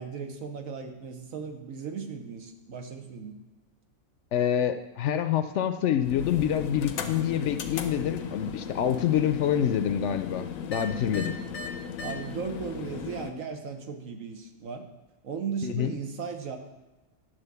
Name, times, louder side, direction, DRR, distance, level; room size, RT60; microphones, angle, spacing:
voice 1, 0.0-3.4 7.0-7.3 11.1-11.3 12.0-14.9 15.2-16.6, right 6 dB, 80° right, 5 dB, 1.4 m, -37 dB
voice 2, 4.3-11.4 15.6-15.9, left 9 dB, 70° left, 9 dB, 0.8 m, -26 dB
sound 1, 6.0-13.3, left 6 dB, 90° left, 1.2 m, -37 dB
10.5 x 3.8 x 6.8 m, 1.1 s
omnidirectional pair, 1.4 m